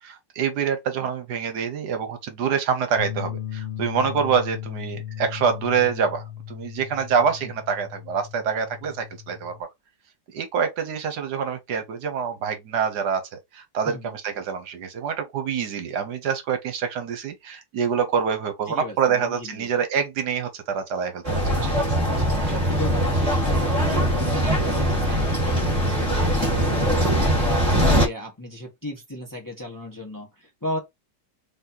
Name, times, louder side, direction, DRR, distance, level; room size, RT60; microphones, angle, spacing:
voice 1, 0.0-9.6 10.3-22.1 22.4-22.5, right 6 dB, 70° right, 1.4 m, -26 dB
sound 1, 3.0-9.6, left 10 dB, 75° left, 0.4 m, -36 dB
voice 2, 18.7-19.7 21.6-21.8 22.4-30.8, left 1 dB, 15° left, 1.0 m, -35 dB
sound 2, 21.2-28.1, equal, 20° right, 1.8 m, -21 dB
4.1 x 3.3 x 2.8 m
omnidirectional pair, 1.9 m